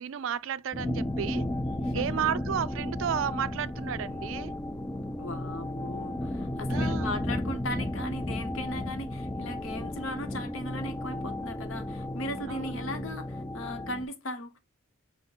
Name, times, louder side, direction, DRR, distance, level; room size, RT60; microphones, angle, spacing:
voice 1, 0.0-1.4 1.9-4.5 6.7-7.1 12.5-12.9, right 8 dB, 70° right, 0.4 m, -32 dB
sound 1, 0.7-14.1, left 1 dB, 10° left, 0.3 m, -33 dB
voice 2, 1.8-2.3 5.2-14.6, left 1 dB, 70° left, 0.8 m, -37 dB
5.4 x 2.1 x 3.8 m
head